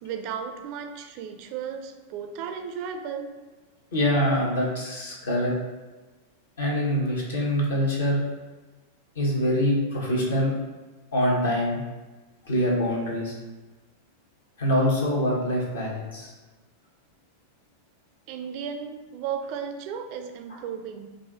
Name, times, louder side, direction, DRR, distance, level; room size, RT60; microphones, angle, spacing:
voice 1, 0.0-3.3 18.3-21.1, right 7 dB, 45° right, 7 dB, 0.4 m, -34 dB
voice 2, 3.9-5.5 6.6-8.2 9.1-10.5 11.1-11.8 12.4-13.3 14.6-16.3 20.5-20.6, equal, 65° left, -3 dB, 1.0 m, -24 dB
4.7 x 2.5 x 2.7 m, 1.2 s
figure-of-eight pair, 90°, 0 cm